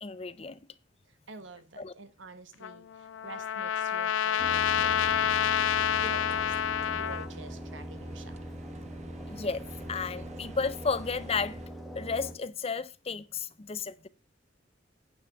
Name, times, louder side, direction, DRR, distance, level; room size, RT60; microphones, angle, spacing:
voice 1, 0.0-0.6 1.8-1.9 9.2-11.6 12.0-14.1, left 5 dB, 30° left, 0.6 m, -33 dB
voice 2, 1.3-6.6 6.8-8.4, right 3 dB, 80° right, 1.3 m, -48 dB
Trumpet, 2.6-7.3, left 9 dB, 90° left, 0.4 m, -28 dB
Motor Boat Sound Effect, 4.4-12.3, equal, ahead, 1.6 m, -41 dB
sound 1, 4.7-11.7, right 3 dB, 35° right, 0.5 m, -51 dB
9.1 x 5.8 x 5.9 m
head